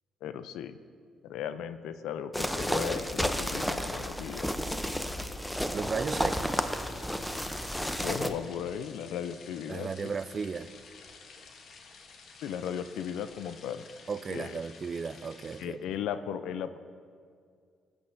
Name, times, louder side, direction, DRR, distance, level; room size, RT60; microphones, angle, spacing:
voice 1, 0.2-0.8 1.2-4.5 8.0-9.9 12.4-13.8 14.3-14.6 15.6-16.8, left 9 dB, 90° left, 0.4 m, -36 dB
sound 1, 2.3-8.3, equal, 5° left, 0.6 m, -32 dB
voice 2, 5.7-6.6 9.7-10.7 14.1-15.8, right 5 dB, 40° right, 0.4 m, -35 dB
sound 2, 6.5-15.6, left 4 dB, 65° left, 1.0 m, -52 dB
17.5 x 8.5 x 2.6 m
cardioid pair, 90°, 0 cm